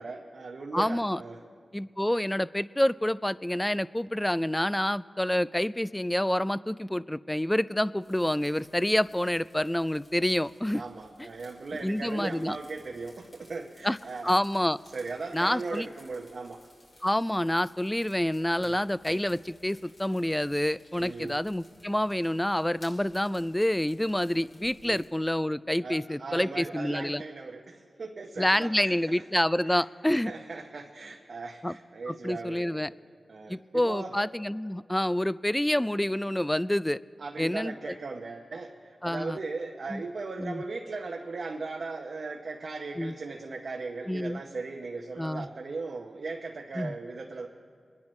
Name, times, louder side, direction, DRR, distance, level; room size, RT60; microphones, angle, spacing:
voice 1, 0.0-1.4 10.7-14.3 14.9-16.7 18.6-18.8 21.0-21.4 24.8-25.0 25.8-29.0 29.6-32.9 33.3-34.1 37.2-47.5, right 3 dB, 70° right, 1 dB, 0.8 m, -38 dB
voice 2, 0.7-1.2 1.7-10.8 11.8-12.6 13.8-14.0 14.2-14.8 15.3-15.9 17.0-27.2 28.4-30.3 31.6-31.7 32.1-32.9 33.5-37.0 37.4-38.0 39.0-39.4 39.9-40.0 40.4-40.6 43.0-43.1 44.1-44.4 45.2-45.5 46.8-46.9, left 1 dB, 10° left, 18 dB, 0.3 m, -28 dB
sound 1, 8.0-25.1, left 1 dB, 60° left, 3.3 m, -59 dB
23.5 x 10.5 x 3.2 m, 2.2 s
cardioid pair, 45°, 0 cm